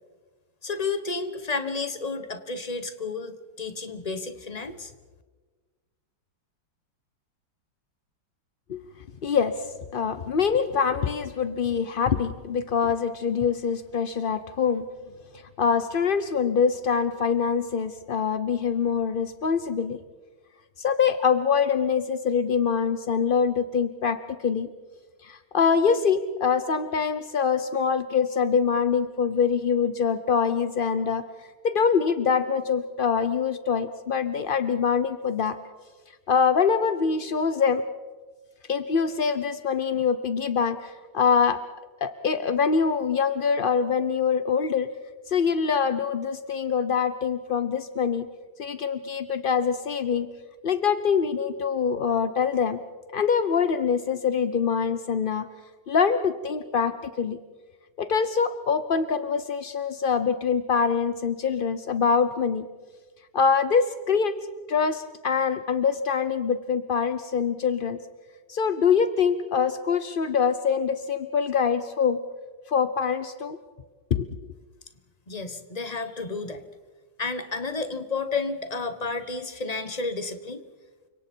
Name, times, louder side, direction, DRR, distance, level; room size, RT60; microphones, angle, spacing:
voice 1, 0.6-4.9 75.3-76.6 77.2-80.6, left 4 dB, 25° left, 9 dB, 1.2 m, -31 dB
voice 2, 9.2-9.7 9.9-14.8 15.6-20.0 20.8-24.7 25.2-31.2 31.6-35.6 36.3-37.8 38.7-41.6 42.0-44.9 45.3-48.3 48.6-50.3 50.6-52.8 53.1-55.5 55.9-57.4 58.0-62.7 63.3-64.4 64.7-68.0 68.5-72.2 72.7-73.6 74.1-74.3, left 6 dB, 55° left, 11 dB, 0.5 m, -24 dB
30.0 x 25.5 x 4.5 m, 1.4 s
omnidirectional pair, 2.1 m